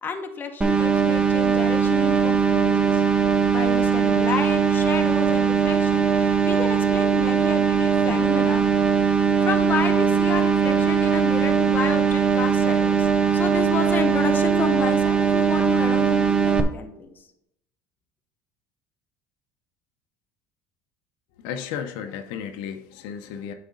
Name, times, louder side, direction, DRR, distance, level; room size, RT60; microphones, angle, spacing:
voice 1, 0.0-3.0 3.5-17.3, left 4 dB, 25° left, 4 dB, 0.9 m, -31 dB
sound 1, 0.6-16.6, right 6 dB, 10° right, 0.6 m, -20 dB
voice 2, 21.4-23.5, left 8 dB, 75° left, 6 dB, 0.7 m, -34 dB
8.7 x 4.2 x 3.9 m, 0.81 s
cardioid pair, 125°, 8 cm